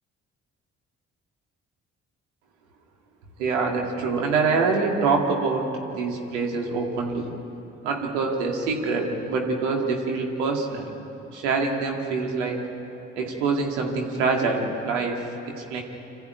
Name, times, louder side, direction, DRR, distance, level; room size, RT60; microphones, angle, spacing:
voice 1, 3.4-7.3 7.8-10.9 11.3-12.7 13.2-15.3 15.5-15.8, right 4 dB, 90° right, 1 dB, 2.3 m, -25 dB
26.0 x 14.5 x 9.4 m, 3.0 s
hypercardioid pair, 50°, 34 cm